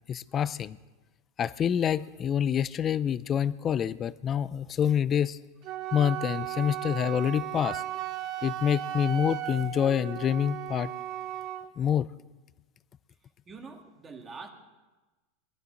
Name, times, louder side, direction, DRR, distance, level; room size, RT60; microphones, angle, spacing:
voice 1, 0.1-0.8 1.4-5.4 5.9-7.8 8.4-10.9 11.8-12.1, left 9 dB, 25° left, 18 dB, 0.4 m, -27 dB
Wind instrument woodwind instrument, 5.6-11.7, right 13 dB, 45° right, 0.7 m, -36 dB
voice 2, 13.5-14.5, right 4 dB, 20° right, 3 dB, 1.8 m, -44 dB
20.5 x 12.0 x 3.8 m, 1.2 s
supercardioid pair, 150°, 0 cm